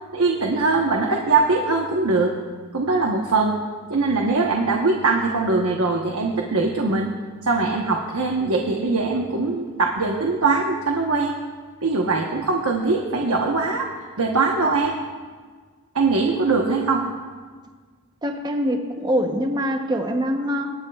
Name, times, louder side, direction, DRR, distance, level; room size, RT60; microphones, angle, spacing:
voice 1, 0.1-2.3 2.7-3.6 3.9-7.1 7.4-11.3 11.8-13.9 14.2-15.0 15.9-17.0, right 3 dB, 75° right, 1 dB, 1.1 m, -21 dB
voice 2, 18.2-20.7, equal, 20° right, 5 dB, 0.8 m, -24 dB
24.0 x 11.0 x 2.4 m, 1.5 s
head